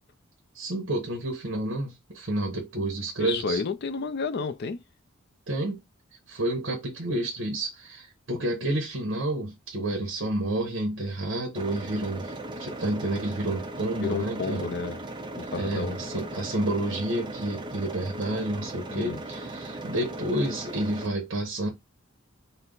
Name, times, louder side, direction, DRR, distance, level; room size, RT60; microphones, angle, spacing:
voice 1, 0.5-3.6 5.5-5.8 6.3-12.3 12.6-14.7 15.4-21.7, right 1 dB, 70° right, 1.1 m, -30 dB
voice 2, 3.2-4.8 13.9-15.0 15.4-16.0 18.9-19.2, left 4 dB, 55° left, 0.5 m, -31 dB
sound 1, 11.6-21.1, right 2 dB, 25° right, 0.6 m, -38 dB
4.3 x 2.1 x 3.8 m
head